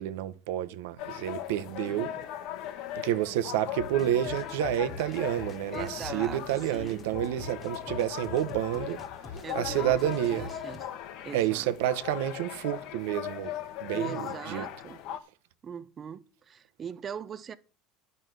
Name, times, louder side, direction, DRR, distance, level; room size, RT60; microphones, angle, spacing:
voice 1, 0.0-2.1 3.0-9.0 9.5-10.5 11.3-13.5 13.8-14.7, right 12 dB, 85° right, 0.9 m, -29 dB
sound 1, 1.0-15.2, left 11 dB, 55° left, 1.2 m, -39 dB
voice 2, 1.8-2.2 5.7-7.1 9.4-10.9 11.2-11.7 13.9-15.0 15.6-17.5, right 7 dB, 25° right, 0.6 m, -40 dB
sound 2, 3.8-10.8, left 3 dB, 15° left, 1.5 m, -44 dB
11.0 x 5.3 x 7.9 m
cardioid pair, 155°, 0 cm